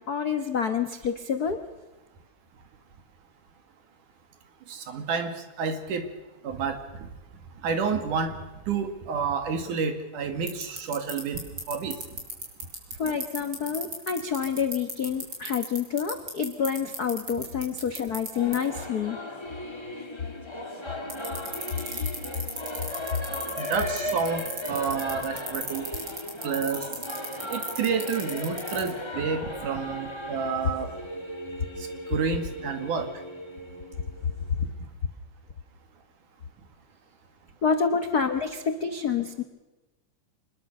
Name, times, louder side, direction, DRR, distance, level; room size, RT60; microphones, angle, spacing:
voice 1, 0.0-1.6 13.0-19.2 37.6-39.4, left 6 dB, 70° left, 8 dB, 0.9 m, -28 dB
voice 2, 4.7-6.1 6.4-7.1 7.6-8.4 8.7-11.4 11.7-12.0 23.6-25.9 26.4-26.9 27.5-30.9 31.8-33.1, right 5 dB, 80° right, 7 dB, 3.7 m, -29 dB
sound 1, 10.5-18.3 18.5-18.6 21.1-28.9, right 3 dB, 30° right, 5.7 m, -33 dB
Singing / Musical instrument, 18.3-34.6, left 1 dB, 15° left, 1.2 m, -37 dB
25.0 x 21.0 x 6.6 m, 1.1 s
omnidirectional pair, 3.6 m